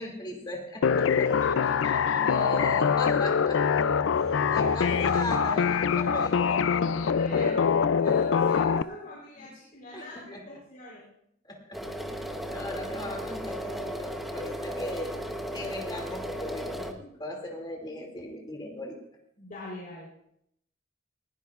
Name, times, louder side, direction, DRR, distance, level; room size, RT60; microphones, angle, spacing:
voice 1, 0.0-1.3 1.8-3.7 4.1-7.5 8.0-8.2 9.4-9.5 9.9-10.4 11.4-11.8 12.1-15.3 15.5-19.0, left 1 dB, 20° left, 1 dB, 2.6 m, -38 dB
sound 1, 0.8-8.8, left 6 dB, 90° left, 0.4 m, -24 dB
voice 2, 1.0-2.2 6.9-7.6 8.0-11.0 14.6-15.0 19.4-20.1, left 2 dB, 45° left, -6 dB, 4.0 m, -43 dB
sound 2, 3.5-7.3, left 1 dB, 70° right, 5.0 m, -42 dB
sound 3, 11.7-16.9, equal, ahead, 1.0 m, -35 dB
20.0 x 16.0 x 2.5 m, 0.74 s
head